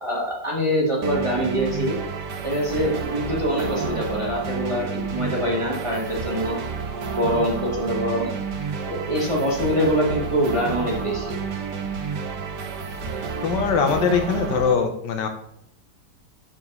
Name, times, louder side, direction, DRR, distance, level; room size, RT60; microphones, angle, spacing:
voice 1, 0.0-2.0 2.4-6.6 7.2-8.3 8.9-11.3, equal, 20° right, -3 dB, 1.1 m, -24 dB
sound 1, 1.0-14.7, right 5 dB, 75° right, 1.4 m, -30 dB
voice 2, 13.4-15.3, left 6 dB, 90° left, 6 dB, 1.4 m, -22 dB
4.7 x 4.3 x 5.3 m, 0.75 s
omnidirectional pair, 1.9 m